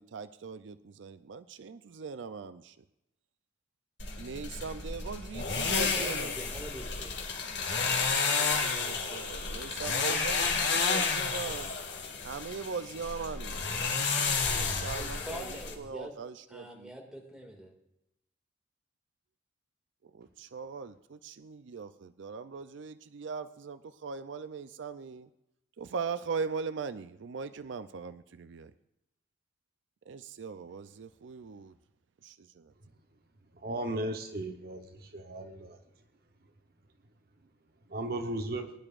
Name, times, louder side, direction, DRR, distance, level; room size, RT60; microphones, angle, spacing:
voice 1, 0.0-2.7 4.2-6.3 8.2-11.7 12.2-15.4 15.8-16.9 20.2-25.3 25.8-28.7 30.1-31.7 32.2-32.4, right 5 dB, 75° right, 12 dB, 0.4 m, -40 dB
sound 1, 4.0-15.7, left 4 dB, 65° left, 2.1 m, -31 dB
voice 2, 5.8-7.1 14.9-16.2 16.5-17.7, equal, 5° right, -1 dB, 2.1 m, -44 dB
voice 3, 33.6-34.9 35.1-35.8 37.9-38.7, right 1 dB, 50° right, 5 dB, 1.0 m, -35 dB
20.5 x 10.5 x 2.5 m, 0.86 s
head